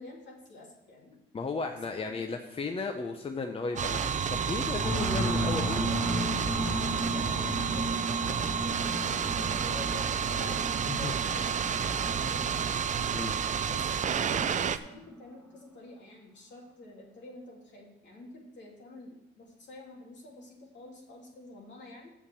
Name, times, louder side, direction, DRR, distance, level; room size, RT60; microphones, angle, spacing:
voice 1, 0.0-1.2 1.8-2.2 3.7-4.3 5.4-6.1 7.1-11.6 11.9-12.7 13.7-22.1, left 2 dB, 65° left, -1 dB, 2.9 m, -48 dB
voice 2, 1.3-5.9 6.7-6.9 10.9-11.1 13.1-13.3, left 4 dB, 30° left, 5 dB, 0.8 m, -35 dB
sound 1, 3.8-14.8, right 7 dB, 40° right, 0.5 m, -30 dB
sound 2, 4.8-15.2, equal, 10° left, 2.1 m, -35 dB
7.4 x 7.1 x 6.9 m, 0.89 s
cardioid pair, 90°, 20 cm